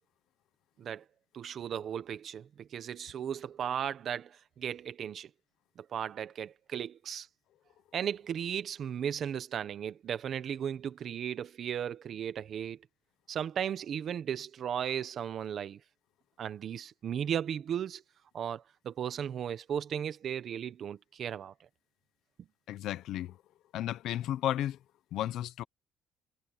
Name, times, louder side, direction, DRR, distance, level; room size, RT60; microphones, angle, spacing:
voice 1, 1.3-5.3 5.8-7.3 7.9-12.8 13.3-15.8 16.4-18.0 18.3-21.5, right 9 dB, 40° right, 1.1 m, -36 dB
voice 2, 22.7-23.4 23.7-24.8 25.1-25.6, left 12 dB, 65° left, 1.0 m, -33 dB
cardioid pair, 165°, 0 cm